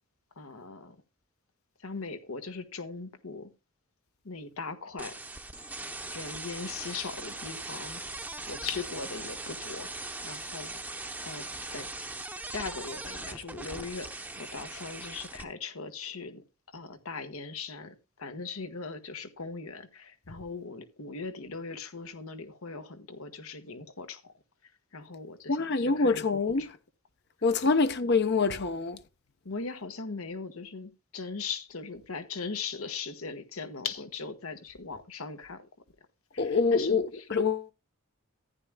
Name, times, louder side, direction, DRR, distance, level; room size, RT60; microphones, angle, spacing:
voice 1, 0.4-1.0 1.8-3.5 4.2-5.2 6.1-8.0 8.5-10.7 11.2-11.4 11.7-11.9 12.5-16.4 16.7-24.2 24.9-26.3 26.6-26.7 29.4-35.7 36.3-37.0, left 4 dB, 80° left, 1.5 m, -39 dB
sound 1, 5.0-15.4, right 2 dB, 5° right, 0.8 m, -40 dB
voice 2, 25.5-26.8 27.4-29.0 36.4-37.7, left 4 dB, 50° left, 0.8 m, -26 dB
14.5 x 10.5 x 2.3 m
head